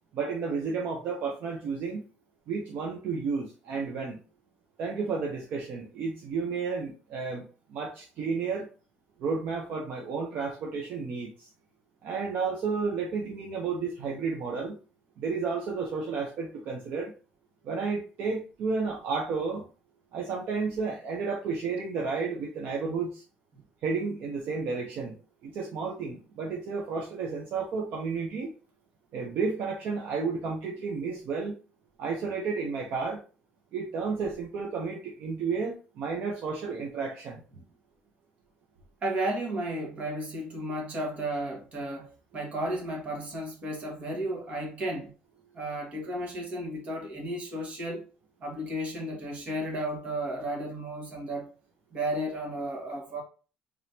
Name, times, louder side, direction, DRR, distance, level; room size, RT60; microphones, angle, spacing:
voice 1, 0.1-2.1 2.5-4.2 4.8-8.7 9.2-11.5 12.0-14.8 15.2-17.1 17.6-19.7 20.1-23.2 23.8-25.2 25.4-28.5 29.1-31.6 32.0-33.2 33.7-37.4, right 4 dB, 65° right, 0.9 m, -32 dB
voice 2, 39.0-45.1 45.5-48.0 48.4-51.5 51.9-53.2, right 1 dB, 45° right, 1.6 m, -33 dB
3.7 x 3.5 x 2.8 m
cardioid pair, 120°, 3 cm